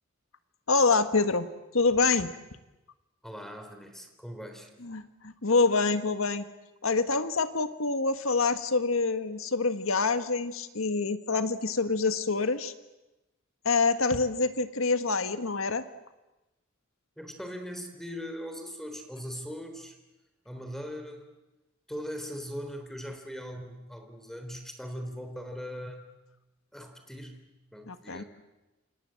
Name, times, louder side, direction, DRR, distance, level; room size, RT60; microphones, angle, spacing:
voice 1, 0.7-1.5 1.7-2.3 4.8-6.4 6.8-12.7 13.6-15.8 27.9-28.2, left 4 dB, 85° left, 9 dB, 1.7 m, -26 dB
voice 2, 3.2-4.7 17.2-20.0 20.4-21.3 21.9-26.1 26.7-27.5 27.7-28.2, equal, ahead, 5 dB, 3.9 m, -40 dB
28.5 x 27.0 x 7.8 m, 1.0 s
head